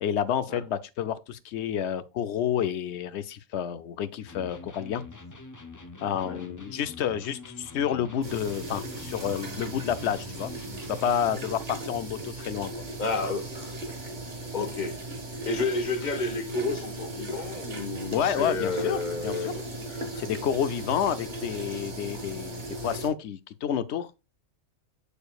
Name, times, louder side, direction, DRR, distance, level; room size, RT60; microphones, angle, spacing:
voice 1, 0.0-5.0 6.0-10.5 10.9-12.8 18.1-19.5 20.2-24.1, left 9 dB, 65° left, 0.9 m, -29 dB
Electric guitar, 4.3-11.6, left 3 dB, 20° left, 0.5 m, -45 dB
sound 1, 8.2-23.1, right 2 dB, 40° right, 1.5 m, -37 dB
voice 2, 13.0-13.7 14.5-15.1 15.5-20.2, left 3 dB, 40° left, 1.3 m, -31 dB
6.7 x 6.7 x 2.3 m
omnidirectional pair, 1.3 m